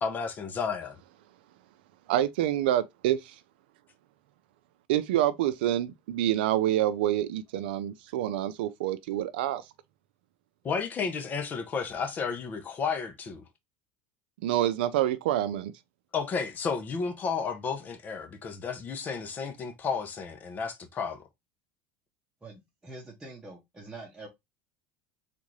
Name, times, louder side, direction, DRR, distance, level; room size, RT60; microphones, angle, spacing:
voice 1, 0.0-1.0 10.6-13.4 16.1-21.2, left 5 dB, 35° left, 0.8 m, -32 dB
voice 2, 2.1-3.3 4.9-9.6 14.4-15.7, right 12 dB, 85° right, 0.5 m, -27 dB
voice 3, 22.4-24.3, right 2 dB, 10° right, 0.9 m, -45 dB
3.6 x 2.5 x 3.1 m
supercardioid pair, 115°, 5 cm